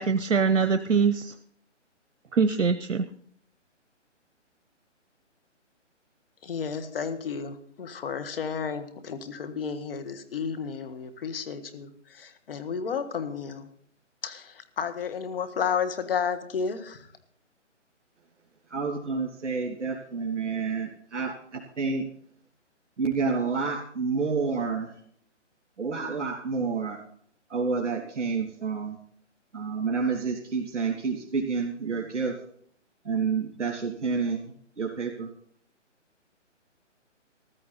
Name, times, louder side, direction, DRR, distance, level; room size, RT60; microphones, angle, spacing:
voice 1, 0.0-1.3 2.3-3.1, right 5 dB, 90° right, 10 dB, 0.8 m, -23 dB
voice 2, 6.4-13.7 14.2-17.1, left 6 dB, 50° left, 9 dB, 1.6 m, -32 dB
voice 3, 18.7-22.1 23.0-24.9 25.8-27.0 27.5-29.0 29.5-32.4 33.0-34.4 34.8-35.3, right 5 dB, 70° right, 0 dB, 3.0 m, -29 dB
14.5 x 13.0 x 4.2 m, 0.64 s
hypercardioid pair, 155°, 37 cm